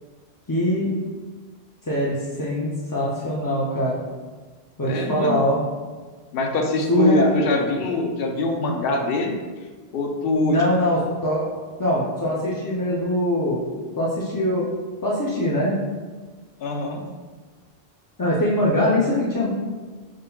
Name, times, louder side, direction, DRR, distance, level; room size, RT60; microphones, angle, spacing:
voice 1, 0.5-0.9 1.8-4.0 4.8-5.6 6.9-7.3 10.4-11.5 11.8-14.7 15.0-15.8 18.2-19.5, left 1 dB, 35° left, -6 dB, 0.3 m, -22 dB
voice 2, 4.8-5.4 6.3-9.4 9.9-10.6 16.6-17.0, left 2 dB, 65° left, 2 dB, 0.8 m, -23 dB
5.4 x 3.7 x 2.2 m, 1.4 s
omnidirectional pair, 1.0 m